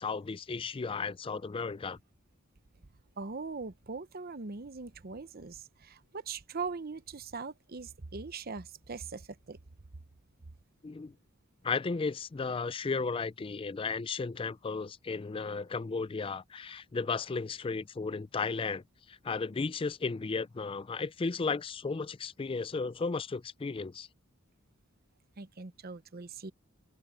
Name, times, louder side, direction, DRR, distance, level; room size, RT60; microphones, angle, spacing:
voice 1, 0.0-2.0 10.8-11.1 11.6-18.8 19.1-24.1, left 4 dB, 25° left, 0.4 m, -34 dB
voice 2, 3.2-9.6 25.4-26.5, right 4 dB, 45° right, 0.8 m, -41 dB
head